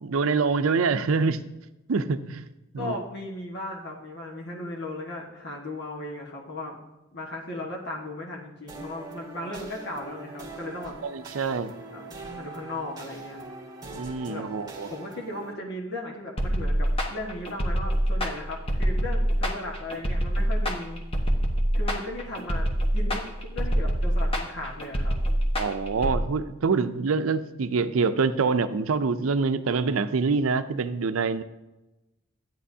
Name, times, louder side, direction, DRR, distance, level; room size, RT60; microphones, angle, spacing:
voice 1, 0.0-1.4 1.9-2.5 2.7-3.0 11.0-11.7 13.8-14.9 25.6-31.4, right 4 dB, 90° right, 11 dB, 0.5 m, -25 dB
voice 2, 2.8-6.8 7.1-10.9 11.9-13.4 14.3-14.5 14.9-21.0 21.7-25.2, left 1 dB, 55° left, -2 dB, 1.5 m, -36 dB
sound 1, 8.7-15.5, right 3 dB, 20° right, 1.8 m, -42 dB
sound 2, 16.4-26.2, equal, 30° left, 1.1 m, -25 dB
12.5 x 9.1 x 2.7 m, 1.0 s
head